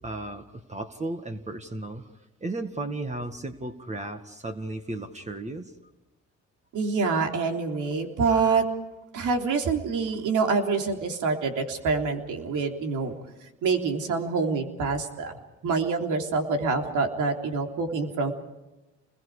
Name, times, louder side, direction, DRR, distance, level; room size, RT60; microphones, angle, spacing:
voice 1, 0.0-2.1 2.4-5.7, right 2 dB, 25° right, 6 dB, 1.9 m, -34 dB
voice 2, 6.7-8.7 9.1-13.1 13.6-15.3 15.6-18.3, right 4 dB, 80° right, 4 dB, 3.5 m, -26 dB
30.0 x 22.0 x 5.0 m, 1.0 s
cardioid pair, 90°, 30 cm